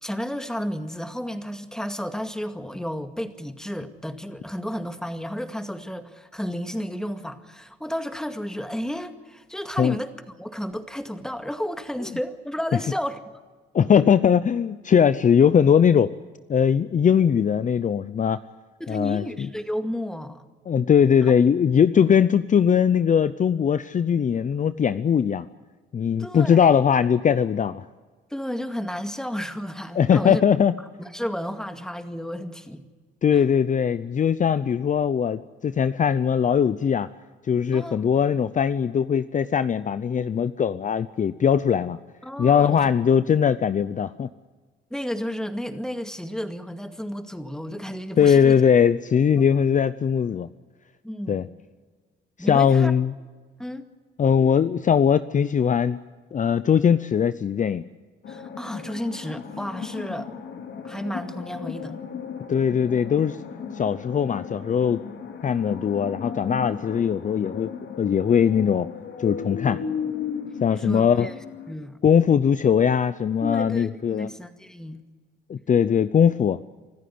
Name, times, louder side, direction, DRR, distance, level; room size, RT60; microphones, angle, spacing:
voice 1, 0.0-13.2 18.8-20.4 26.2-26.8 28.3-30.4 31.0-32.9 37.7-38.0 42.2-42.9 44.9-48.6 49.4-49.5 51.0-51.4 52.4-52.9 53.6-53.8 58.3-60.3 60.8-62.0 70.7-71.4 71.7-72.0 73.4-75.0, equal, 5° left, 7 dB, 2.1 m, -32 dB
voice 2, 13.7-16.1 16.5-18.4 18.9-19.2 20.7-25.5 25.9-27.8 30.0-30.7 33.2-37.1 37.5-42.0 42.4-44.3 48.2-50.5 51.3-51.5 52.4-53.1 54.2-56.0 56.3-57.8 62.5-63.4 63.7-65.0 65.4-67.7 68.0-68.9 69.2-69.8 70.6-71.3 72.0-74.3 75.5-76.6, left 7 dB, 40° left, 14 dB, 0.7 m, -20 dB
sound 1, 58.2-71.7, left 7 dB, 65° left, 2.7 m, -36 dB
25.5 x 14.0 x 9.6 m, 1.4 s
cardioid pair, 90°, 20 cm